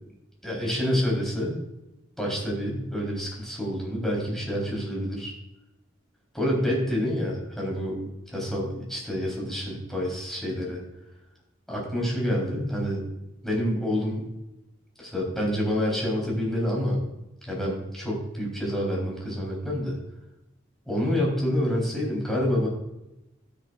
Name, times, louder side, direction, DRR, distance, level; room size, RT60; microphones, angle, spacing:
voice 1, 0.4-1.6 2.2-5.3 6.3-8.0 8.3-10.8 11.7-13.0 13.4-14.3 15.0-17.0 17.4-20.0 20.9-22.7, equal, ahead, -3 dB, 4.1 m, -27 dB
12.5 x 10.0 x 2.5 m, 0.94 s
head